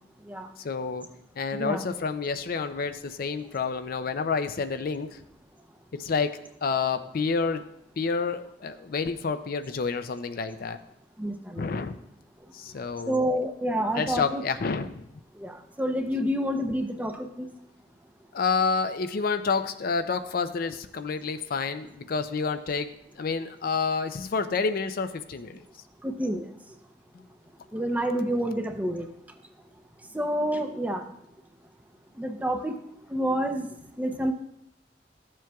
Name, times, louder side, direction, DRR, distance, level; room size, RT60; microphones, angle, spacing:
voice 1, 0.6-1.1 1.4-5.2 5.9-7.6 8.0-10.8 11.6-12.0 12.5-13.3 13.9-15.0 18.3-25.6, left 4 dB, 55° left, 10 dB, 0.5 m, -29 dB
voice 2, 11.2-11.7 13.1-14.4 15.4-17.5 26.0-26.5 27.7-29.1 30.1-31.0 32.2-32.7 33.1-33.7 34.0-34.3, equal, 10° right, 5 dB, 0.6 m, -28 dB
13.5 x 7.5 x 2.3 m, 0.77 s
head